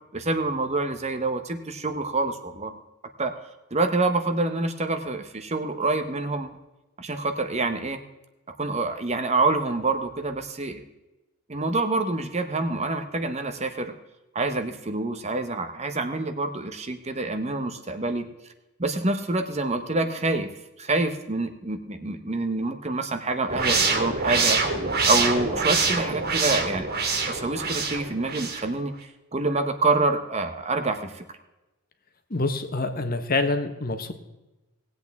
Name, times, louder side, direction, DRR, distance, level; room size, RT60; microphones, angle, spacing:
voice 1, 0.1-2.8 3.2-3.3 3.7-6.5 7.0-8.0 8.6-10.8 11.5-13.9 14.3-18.3 18.8-20.5 20.8-24.6 25.1-26.9 27.3-28.9 29.3-31.2, right 2 dB, 30° right, 7 dB, 0.9 m, -26 dB
sound 1, 23.5-28.6, right 4 dB, 45° right, 2.1 m, -25 dB
voice 2, 32.3-34.1, left 3 dB, 40° left, 7 dB, 1.2 m, -26 dB
18.5 x 8.3 x 3.5 m, 1.0 s
head